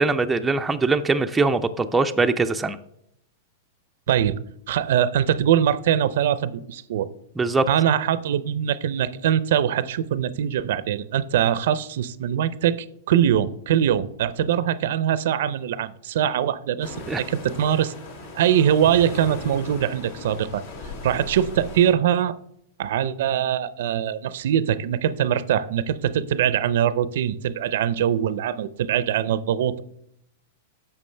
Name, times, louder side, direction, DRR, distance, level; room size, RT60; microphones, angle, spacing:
voice 1, 0.0-2.8 7.4-7.7 17.1-17.2, right 3 dB, 10° right, 6 dB, 0.5 m, -22 dB
voice 2, 4.1-4.4 4.7-7.1 7.7-17.9 18.3-20.6 21.0-22.4 22.8-29.8, right 10 dB, 65° right, 16 dB, 0.5 m, -22 dB
sound 1, 16.8-21.9, left 2 dB, 70° left, 3.0 m, -37 dB
10.5 x 7.0 x 3.3 m, 0.73 s
hypercardioid pair, 140°, 0 cm